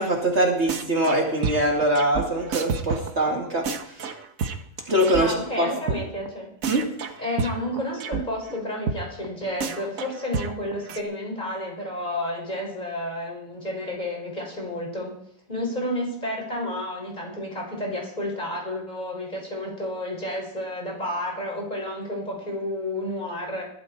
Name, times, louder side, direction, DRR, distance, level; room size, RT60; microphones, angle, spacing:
voice 1, 0.0-4.0 4.9-6.0 6.7-6.9, right 1 dB, 55° right, 0 dB, 2.7 m, -23 dB
sound 1, 0.7-1.2 1.4-5.2 5.5-5.6 5.9-6.0 6.3-6.4 6.6-8.2 8.5-8.6 8.9-9.0 9.2-9.3 9.6-11.0, right 6 dB, 75° right, 1.5 m, -29 dB
voice 2, 5.2-6.5 7.2-15.1 15.5-23.6, left 1 dB, 30° left, -1 dB, 5.7 m, -31 dB
20.5 x 13.5 x 4.3 m, 0.71 s
omnidirectional pair, 1.4 m